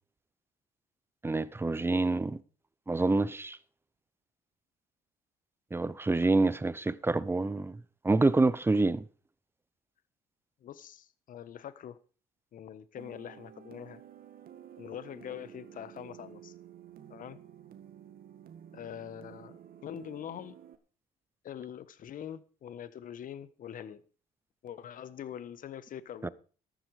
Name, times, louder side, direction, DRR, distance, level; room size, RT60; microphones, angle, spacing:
voice 1, 1.2-2.4 2.9-3.6 5.7-7.8 8.0-9.0 26.2-26.3, right 3 dB, 15° right, 0.8 m, -27 dB
voice 2, 10.6-12.0 12.5-14.0 14.8-16.5 17.1-17.4 18.7-20.6 21.4-24.0 24.6-26.3, left 9 dB, 55° left, 1.4 m, -44 dB
sound 1, 13.0-20.8, right 10 dB, 60° right, 2.0 m, -52 dB
14.0 x 12.0 x 4.9 m
cardioid pair, 110°, 17 cm